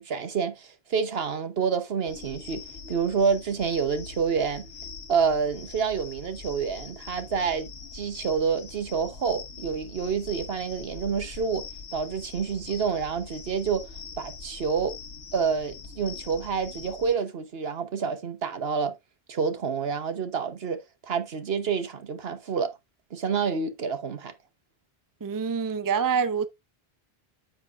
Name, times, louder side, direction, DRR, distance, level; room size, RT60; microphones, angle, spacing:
voice 1, 0.0-2.6 2.9-4.7 5.1-11.6 11.9-13.9 14.2-14.9 15.3-18.9 19.3-20.8 21.1-22.7 23.1-24.3, right 6 dB, 70° right, 1.3 m, -28 dB
sound 1, 2.1-17.1, left 5 dB, 75° left, 1.3 m, -43 dB
voice 2, 25.2-26.5, right 6 dB, 25° right, 0.5 m, -26 dB
9.3 x 6.5 x 2.5 m
omnidirectional pair, 1.1 m